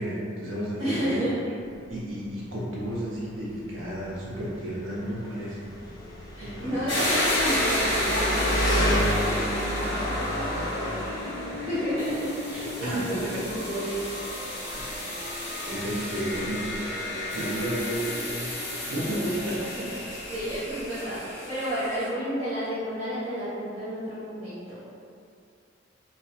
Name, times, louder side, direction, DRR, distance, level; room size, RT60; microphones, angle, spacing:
voice 1, 0.0-1.2 1.9-5.7 6.4-6.8 12.5-13.5 14.7-15.1 15.6-16.7 17.3-19.9, right 1 dB, 80° right, -6 dB, 0.7 m, -32 dB
voice 2, 0.8-1.4 6.3-14.0 19.8-19.9 20.3-24.8, equal, 25° right, -14 dB, 0.6 m, -31 dB
Engine, 1.6-21.2, left 1 dB, 20° left, 0.3 m, -33 dB
sound 1, 6.9-22.1, left 1 dB, 70° left, 1.2 m, -32 dB
2.7 x 2.1 x 2.7 m, 2.4 s
head